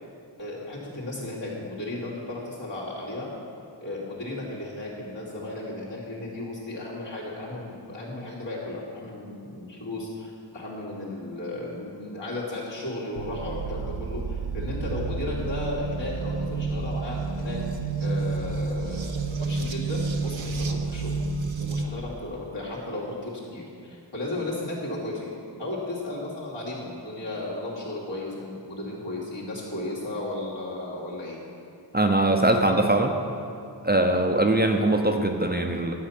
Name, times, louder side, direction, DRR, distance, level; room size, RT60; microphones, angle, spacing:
voice 1, 0.4-3.3 3.8-17.6 18.0-21.1 21.6-25.3 25.6-31.4, left 2 dB, 70° left, -7 dB, 3.0 m, -34 dB
sound 1, 13.2-21.8, right 4 dB, 80° right, 0.8 m, -30 dB
voice 2, 31.9-33.2 33.8-35.9, right 1 dB, 20° right, 3 dB, 0.7 m, -22 dB
11.5 x 7.3 x 5.8 m, 2.5 s
wide cardioid pair, 70°, 45 cm